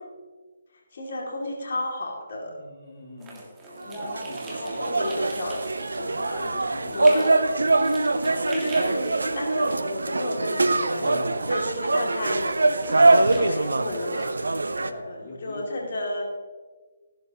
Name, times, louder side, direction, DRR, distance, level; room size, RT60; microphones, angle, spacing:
voice 1, 0.9-2.5 4.6-5.6 6.9-7.2 8.5-11.0 11.5-14.4 15.0-16.3, left 1 dB, 55° left, -1 dB, 2.5 m, -32 dB
voice 2, 2.5-3.4 3.8-5.3 5.9-7.2 7.8-8.1 10.9-11.6 14.8-15.9, left 1 dB, 35° left, -3 dB, 2.4 m, -39 dB
sound 1, 3.2-14.3, right 2 dB, 15° right, 1.9 m, -44 dB
sound 2, 3.8-14.9, right 2 dB, 70° right, 0.6 m, -23 dB
14.5 x 11.5 x 3.0 m, 1.4 s
figure-of-eight pair, 140°, 0 cm